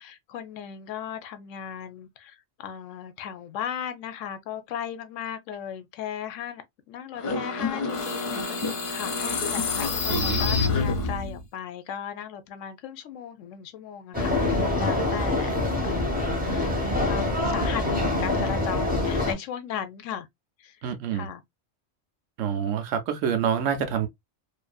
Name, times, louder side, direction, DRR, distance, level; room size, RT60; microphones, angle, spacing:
voice 1, 0.0-15.5 15.8-16.8 17.0-20.3 20.6-20.8 21.1-21.4, left 8 dB, 85° left, 0.9 m, -37 dB
sound 1, 7.2-11.4, left 4 dB, 60° left, 0.9 m, -27 dB
voice 2, 10.1-10.6 16.8-16.9 20.8-21.3 22.4-24.1, right 8 dB, 85° right, 1.0 m, -27 dB
sound 2, 14.1-19.3, left 2 dB, 10° right, 0.7 m, -25 dB
2.7 x 2.5 x 2.2 m
omnidirectional pair, 1.3 m